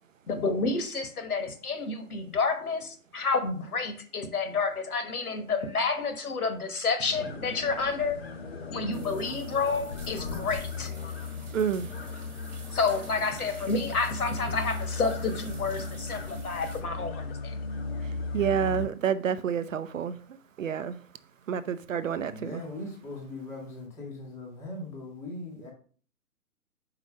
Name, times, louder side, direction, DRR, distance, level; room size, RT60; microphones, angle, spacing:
voice 1, 0.3-8.2 8.7-10.9 12.7-17.5, left 4 dB, 70° left, 1.3 m, -29 dB
sound 1, 7.1-18.9, left 3 dB, 45° left, 0.7 m, -36 dB
sound 2, 8.9-16.8, right 5 dB, 20° right, 1.2 m, -51 dB
voice 2, 11.5-12.1 18.0-20.2 20.6-21.0 21.5-22.7, right 8 dB, 60° right, 0.5 m, -29 dB
voice 3, 22.2-25.7, left 2 dB, 5° left, 0.7 m, -40 dB
4.9 x 4.1 x 5.1 m
figure-of-eight pair, 135°, 45 cm